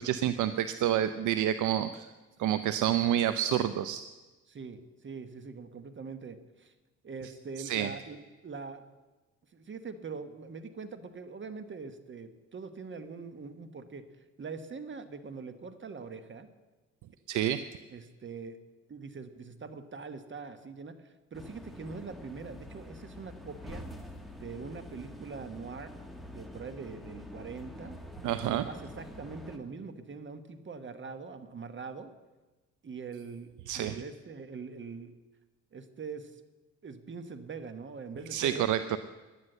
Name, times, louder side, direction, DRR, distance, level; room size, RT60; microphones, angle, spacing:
voice 1, 0.0-2.1 2.4-4.0 7.6-7.9 17.3-17.6 28.2-28.7 33.7-34.0 38.3-39.0, right 11 dB, 80° right, 11 dB, 0.6 m, -28 dB
voice 2, 4.5-6.7 7.0-8.8 9.5-14.0 14.4-16.5 17.9-18.6 18.9-23.9 24.4-25.9 26.3-28.0 28.4-32.1 32.8-35.1 35.7-36.4 36.8-38.8, right 5 dB, 40° right, 10 dB, 1.2 m, -43 dB
sound 1, 21.3-29.6, left 1 dB, ahead, 1.7 m, -46 dB
11.0 x 9.9 x 7.8 m, 1.2 s
cardioid pair, 90°, 30 cm